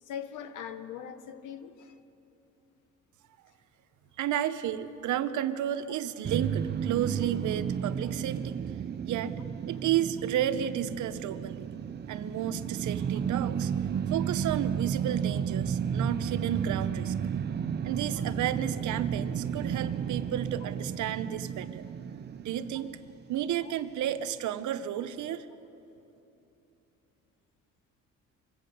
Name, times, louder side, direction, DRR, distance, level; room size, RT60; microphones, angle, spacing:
voice 1, 0.0-2.0 8.0-8.1 23.6-23.7, left 8 dB, 90° left, 10 dB, 0.9 m, -41 dB
voice 2, 4.2-8.6 9.1-9.3 9.6-11.7 12.1-13.7 14.1-17.1 17.8-21.9 22.4-22.9 23.3-25.5, right 10 dB, 75° right, 11 dB, 0.8 m, -32 dB
sound 1, 6.2-23.4, right 8 dB, 35° right, 0.4 m, -32 dB
23.5 x 8.5 x 6.6 m, 2.9 s
cardioid pair, 90°, 30 cm